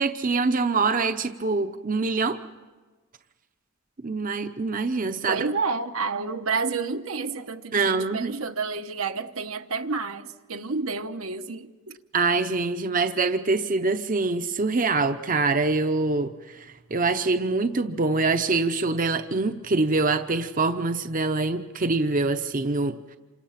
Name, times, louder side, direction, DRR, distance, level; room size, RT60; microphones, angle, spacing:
voice 1, 0.0-2.4 4.0-5.5 7.7-8.3 12.1-16.3 16.9-22.9, right 3 dB, 40° right, 0.8 m, -24 dB
voice 2, 5.3-12.0, right 4 dB, 80° right, 1.1 m, -30 dB
28.0 x 25.5 x 5.8 m
head